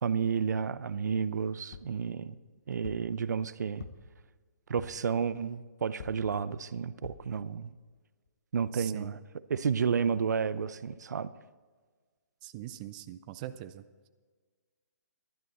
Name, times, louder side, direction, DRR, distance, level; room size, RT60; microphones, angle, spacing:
voice 1, 0.0-2.4 2.7-3.9 4.7-7.7 8.5-9.2 9.5-11.3, right 6 dB, 70° right, 0.6 m, -31 dB
sound 1, 1.7-2.0 2.8-3.1 3.8-4.2 4.8-5.1 6.0-6.3 7.0-7.3 7.9-8.0 8.3-8.4, left 6 dB, 50° left, 1.1 m, -46 dB
voice 2, 8.7-9.1 12.4-13.8, right 13 dB, 30° right, 0.5 m, -42 dB
15.5 x 12.0 x 4.2 m
hypercardioid pair, 150°, 10 cm